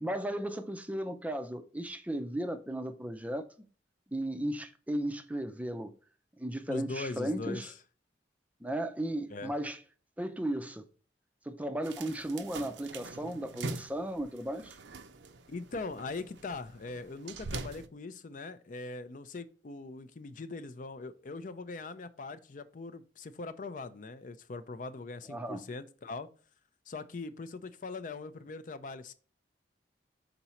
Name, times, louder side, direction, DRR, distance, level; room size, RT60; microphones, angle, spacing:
voice 1, 0.0-3.7 4.1-5.9 6.4-7.7 8.6-9.8 10.2-10.9 11.5-14.8 25.3-25.7, right 1 dB, 10° right, 0.5 m, -35 dB
voice 2, 6.7-7.7 9.3-9.5 15.5-26.3 26.9-29.1, left 3 dB, 45° left, 0.5 m, -41 dB
sound 1, 11.8-17.9, right 3 dB, 80° right, 0.6 m, -43 dB
6.0 x 4.0 x 4.2 m
head